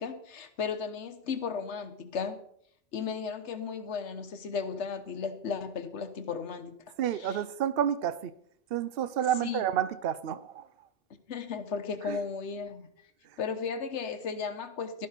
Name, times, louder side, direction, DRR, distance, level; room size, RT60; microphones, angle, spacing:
voice 1, 0.0-2.4 2.9-6.8 7.2-7.4 9.4-9.7 11.3-12.9 13.4-15.1, left 5 dB, 65° left, 1.3 m, -35 dB
voice 2, 7.0-8.3 8.7-10.7 12.1-12.2, right 10 dB, 55° right, 0.7 m, -30 dB
12.0 x 11.5 x 4.1 m
omnidirectional pair, 1.3 m